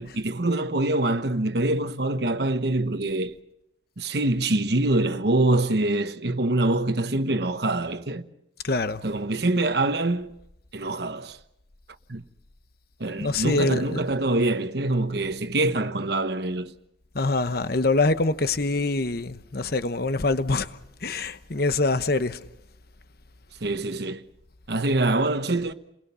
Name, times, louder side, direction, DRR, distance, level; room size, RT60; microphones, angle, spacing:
voice 1, 0.0-3.3 4.0-8.3 9.0-10.4 10.7-11.4 12.1-12.2 13.0-16.7 23.6-24.2 24.7-25.7, right 2 dB, 60° right, 1.1 m, -25 dB
voice 2, 8.6-9.0 13.2-14.0 17.1-20.7 21.0-22.4, left 3 dB, 55° left, 1.0 m, -24 dB
30.0 x 21.5 x 5.6 m
head